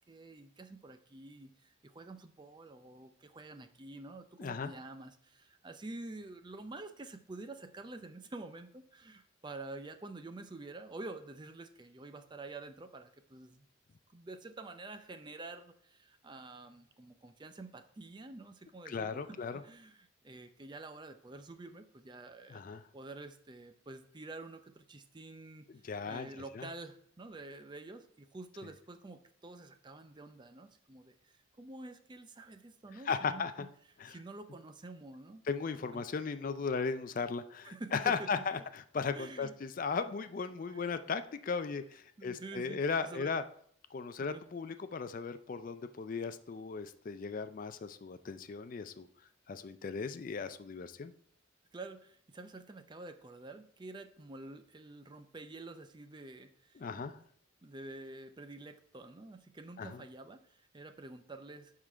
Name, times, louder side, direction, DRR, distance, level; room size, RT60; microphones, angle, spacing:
voice 1, 0.1-13.7 14.1-22.6 22.9-25.7 26.1-33.7 34.1-35.5 35.9-36.1 37.6-38.5 39.1-39.6 40.7-41.0 42.2-43.3 44.2-44.4 51.7-57.3 57.6-61.7, right 2 dB, 20° right, 8 dB, 0.5 m, -48 dB
voice 2, 4.4-4.7 18.9-19.6 22.5-22.8 25.8-26.3 26.5-26.6 33.1-33.7 34.0-34.2 35.5-43.4 43.9-49.1 49.5-51.1 56.8-57.1 59.8-60.0, left 5 dB, 40° left, 11 dB, 0.4 m, -36 dB
11.0 x 3.7 x 4.5 m, 0.63 s
head